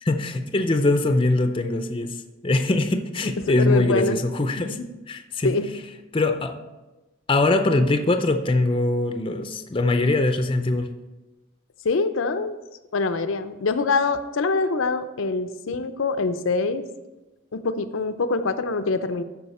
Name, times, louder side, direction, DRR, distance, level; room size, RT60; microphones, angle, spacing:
voice 1, 0.0-4.8 5.1-5.5 6.1-6.6 7.3-10.9, left 2 dB, 25° left, 0.5 m, -22 dB
voice 2, 3.6-4.2 4.6-4.9 5.4-5.7 11.8-12.6 12.9-16.8 17.5-19.2, left 3 dB, 75° left, 0.5 m, -24 dB
13.0 x 5.0 x 4.2 m
head